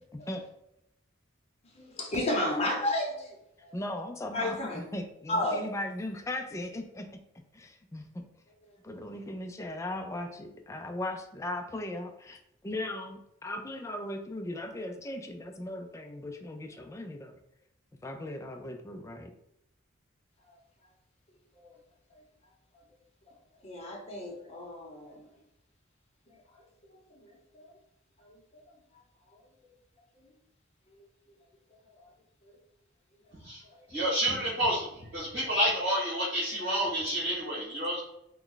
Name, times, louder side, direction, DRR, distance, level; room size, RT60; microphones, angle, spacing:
voice 1, 0.1-0.5 2.1-2.2 3.7-7.2 7.5-8.0 8.8-17.4 18.0-19.3, left 1 dB, 15° left, 5 dB, 0.3 m, -38 dB
voice 2, 1.8-3.3 3.6-3.7 4.3-4.8 5.3-5.7 21.6-21.7 23.6-25.3 27.2-27.7 28.2-28.3, left 1 dB, 35° left, -1 dB, 0.9 m, -32 dB
voice 3, 33.9-38.0, equal, 70° right, -8 dB, 1.5 m, -29 dB
3.1 x 2.3 x 3.8 m, 0.80 s
head